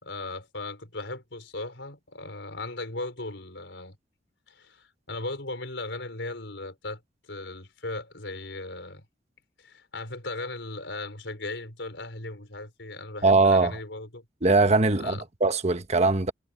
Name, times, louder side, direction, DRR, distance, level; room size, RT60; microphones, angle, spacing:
voice 1, 0.0-4.0 4.5-7.0 7.3-9.0 9.6-14.2 15.0-15.2, left 2 dB, 75° left, 4.4 m, -37 dB
voice 2, 13.2-13.8 14.4-16.3, right 3 dB, 35° right, 1.2 m, -21 dB
head